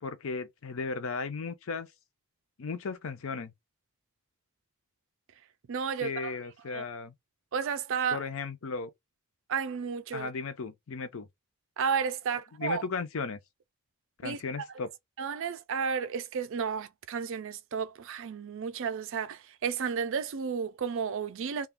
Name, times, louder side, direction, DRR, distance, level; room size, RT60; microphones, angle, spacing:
voice 1, 0.0-1.9 2.6-3.5 6.0-7.1 8.1-8.9 10.1-11.3 12.6-13.4 14.2-14.9, left 4 dB, 60° left, 0.5 m, -35 dB
voice 2, 5.7-6.3 6.7-6.8 7.5-8.2 9.5-10.3 11.8-12.8 14.2-14.4 15.2-21.7, right 6 dB, 60° right, 0.4 m, -32 dB
2.4 x 2.3 x 3.5 m
head